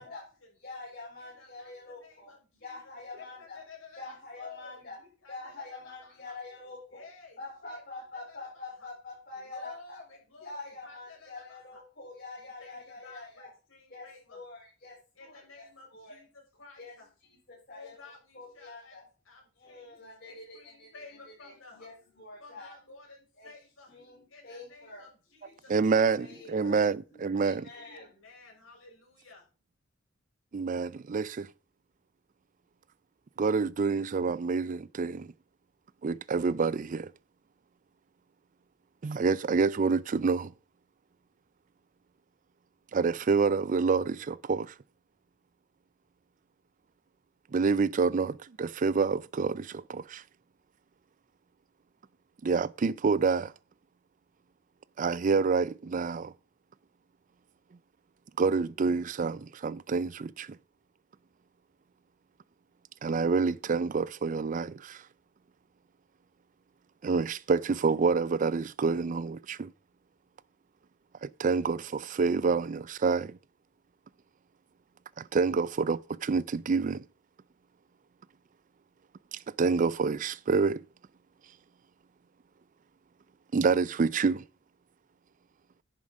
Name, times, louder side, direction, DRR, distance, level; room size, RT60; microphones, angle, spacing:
voice 1, 0.0-0.6 1.2-6.4 6.9-8.9 9.3-11.8 12.4-14.4 15.1-17.1 17.7-19.0 19.2-24.0 24.3-26.8 27.7-29.5, left 4 dB, 75° left, 6.3 m, -54 dB
voice 2, 0.6-3.6 4.0-5.0 5.3-7.0 7.4-10.0 10.4-13.5 13.9-15.6 15.9-16.2 16.8-19.0 19.5-22.7 23.4-23.5 23.9-25.1 25.4-26.8 27.2-28.1, left 3 dB, 45° left, 4.3 m, -46 dB
voice 3, 25.7-27.6 30.5-31.5 33.4-35.3 36.0-37.1 39.0-40.5 42.9-44.7 47.5-50.2 52.4-53.5 55.0-56.3 58.4-60.6 63.0-65.0 67.0-69.7 71.2-73.4 75.2-77.0 79.3-80.8 83.5-84.4, right 4 dB, 40° right, 0.4 m, -27 dB
10.5 x 7.2 x 4.9 m
head